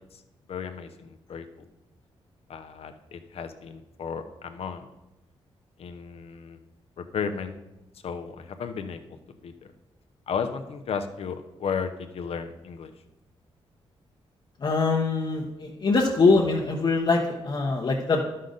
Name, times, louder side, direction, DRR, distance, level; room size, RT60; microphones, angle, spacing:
voice 1, 0.5-1.4 2.5-4.9 5.8-6.6 7.0-7.6 8.0-9.2 9.4-9.5 10.3-12.9, left 6 dB, 70° left, 7 dB, 0.8 m, -34 dB
voice 2, 14.6-18.2, left 3 dB, 45° left, -1 dB, 1.0 m, -23 dB
11.0 x 6.5 x 4.0 m, 0.98 s
cardioid pair, 85°, 11 cm